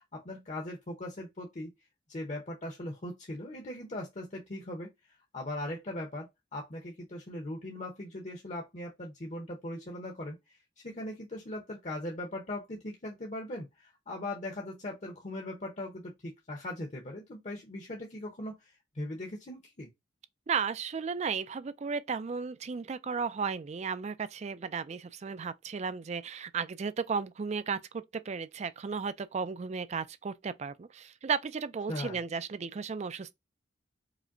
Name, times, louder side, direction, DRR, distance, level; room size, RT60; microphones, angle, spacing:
voice 1, 0.0-1.7 2.1-19.9 31.9-32.2, left 1 dB, 40° left, 0.8 m, -40 dB
voice 2, 20.5-33.3, right 5 dB, 40° right, 0.4 m, -34 dB
4.9 x 2.2 x 2.6 m
head